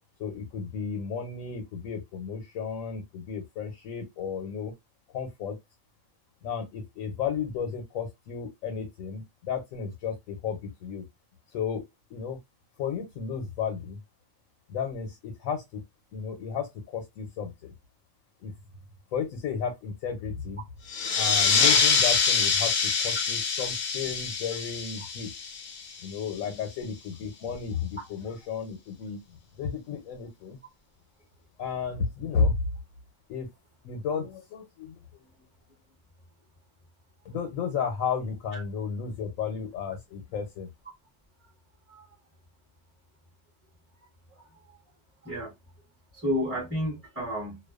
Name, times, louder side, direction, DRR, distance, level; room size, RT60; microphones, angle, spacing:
voice 1, 0.2-4.7 5.1-5.6 6.4-11.1 11.5-11.8 12.1-12.4 12.8-14.0 14.7-15.8 16.1-17.7 18.4-18.5 19.1-20.6 21.2-25.3 26.0-29.2 29.6-30.6 31.6-32.6 33.3-33.5 33.8-35.4 37.2-40.7, left 6 dB, 85° left, 1.0 m, -33 dB
sound 1, 20.9-26.1, left 5 dB, 60° left, 0.6 m, -25 dB
voice 2, 46.1-47.6, equal, 10° right, 0.8 m, -31 dB
2.4 x 2.2 x 2.3 m
omnidirectional pair, 1.4 m